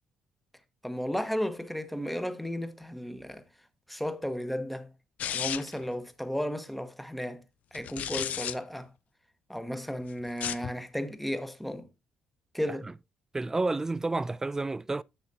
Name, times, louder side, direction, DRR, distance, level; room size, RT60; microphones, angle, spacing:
voice 1, 0.8-3.4 3.9-4.9 5.2-7.4 7.7-8.9 9.5-11.9 12.5-12.9, equal, ahead, 1.3 m, -34 dB
sound 1, 5.2-5.8 7.7-8.5 10.3-10.7, left 10 dB, 65° left, 0.5 m, -33 dB
voice 2, 13.3-15.0, right 3 dB, 20° right, 0.4 m, -30 dB
10.0 x 7.1 x 2.8 m
supercardioid pair, 70°, 3 cm